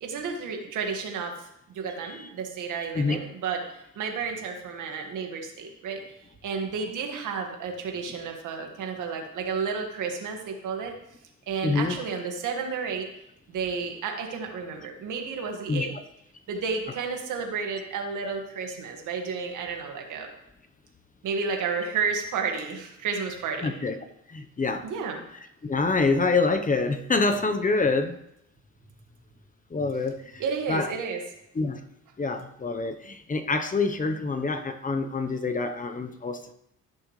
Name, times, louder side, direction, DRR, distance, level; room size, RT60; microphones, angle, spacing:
voice 1, 0.0-3.6 4.0-6.0 6.4-10.9 11.5-13.1 13.5-15.9 16.5-20.3 21.2-23.7 24.8-25.2 30.4-31.2, right 5 dB, 85° right, 2 dB, 1.9 m, -31 dB
voice 2, 11.6-12.0 15.7-15.9 23.6-24.0 24.3-24.9 25.6-28.2 29.7-30.4 30.7-30.9 31.5-31.8 32.2-36.5, left 3 dB, 25° left, 7 dB, 0.9 m, -26 dB
16.0 x 6.7 x 3.3 m, 0.78 s
cardioid pair, 90°, 30 cm